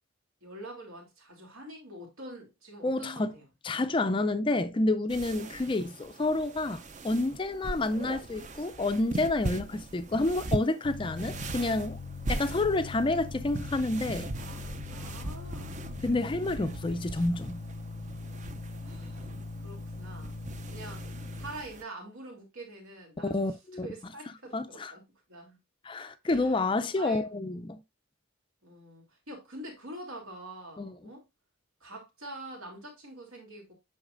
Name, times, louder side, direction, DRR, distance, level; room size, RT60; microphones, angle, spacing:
voice 1, 0.4-3.4 5.4-5.6 7.7-7.9 12.3-12.5 14.3-15.9 16.8-16.9 18.8-19.3 19.6-20.4 20.7-21.0 21.4-23.5 23.8-25.0 25.3-25.6 26.2-26.6 27.0-27.6 28.6-31.2 31.8-33.7, right 1 dB, 80° right, 2.9 m, -45 dB
voice 2, 2.8-3.3 3.6-12.0 12.3-14.3 16.0-17.6 23.2-23.9 24.5-24.9 25.8-27.8 30.8-30.9, left 2 dB, 25° left, 0.4 m, -29 dB
sound 1, 5.1-21.8, right 2 dB, 35° right, 0.5 m, -40 dB
sound 2, 10.8-21.5, left 3 dB, 80° left, 0.5 m, -41 dB
8.1 x 5.8 x 2.5 m
head